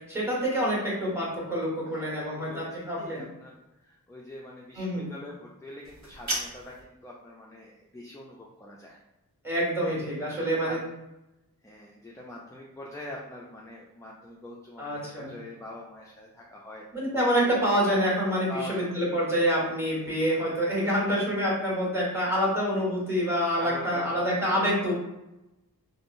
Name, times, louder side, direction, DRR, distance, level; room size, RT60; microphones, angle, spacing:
voice 1, 0.1-3.2 4.8-5.1 9.4-10.8 14.8-15.3 16.9-24.9, equal, 5° right, -5 dB, 1.4 m, -27 dB
voice 2, 1.8-2.7 3.0-9.0 9.8-10.8 11.6-16.9 17.4-17.5 18.5-19.0 19.9-20.1 23.6-24.3, left 1 dB, 10° left, -3 dB, 0.4 m, -44 dB
sound 1, 5.8-6.9, right 1 dB, 50° right, 0.7 m, -34 dB
3.5 x 2.0 x 2.5 m, 0.94 s
wide cardioid pair, 50°, 37 cm